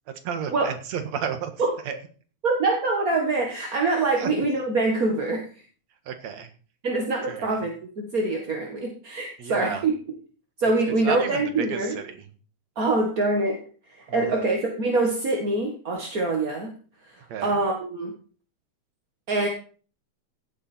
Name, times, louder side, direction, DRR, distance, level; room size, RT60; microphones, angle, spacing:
voice 1, 0.2-1.5 1.8-1.9 4.2-4.5 6.1-6.5 7.3-7.5 9.4-9.8 10.8-12.3 14.1-14.4 17.3-17.6, right 7 dB, 60° right, 7 dB, 2.8 m, -32 dB
voice 2, 2.4-5.5 6.8-9.9 10.6-12.0 12.7-13.6 13.9-16.7 17.0-17.1 17.4-18.1 19.3-19.5, right 3 dB, 35° right, 1 dB, 1.6 m, -24 dB
16.0 x 8.8 x 4.5 m, 0.40 s
omnidirectional pair, 3.6 m